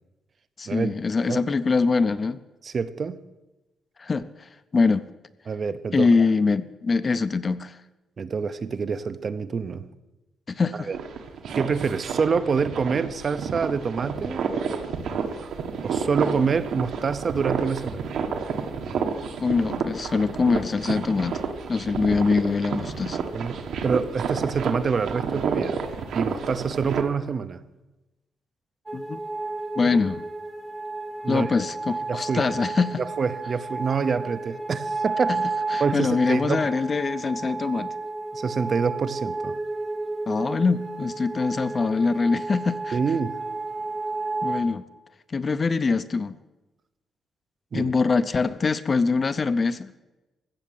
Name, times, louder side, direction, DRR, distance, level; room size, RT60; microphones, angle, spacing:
voice 1, 0.6-2.4 4.0-5.1 5.9-7.8 10.5-10.9 19.4-21.4 21.7-23.2 28.9-29.2 29.8-30.2 31.3-33.0 35.3-35.4 35.7-37.9 40.3-43.0 44.4-44.8 45.3-46.4 47.7-49.9, left 4 dB, 30° left, 0.5 m, -23 dB
voice 2, 2.6-3.2 5.5-6.3 8.2-9.9 10.9-11.0 11.5-14.5 15.8-18.1 23.3-25.8 26.1-27.6 29.8-30.0 31.2-31.5 32.1-32.5 33.0-35.4 35.8-36.6 38.3-39.6 42.9-43.4 47.7-47.9, right 5 dB, 35° right, 0.7 m, -26 dB
sound 1, 10.9-27.0, right 6 dB, 70° right, 1.5 m, -30 dB
sound 2, 28.9-44.6, right 3 dB, 15° right, 1.3 m, -32 dB
15.5 x 7.1 x 9.1 m
cardioid pair, 150°, 0 cm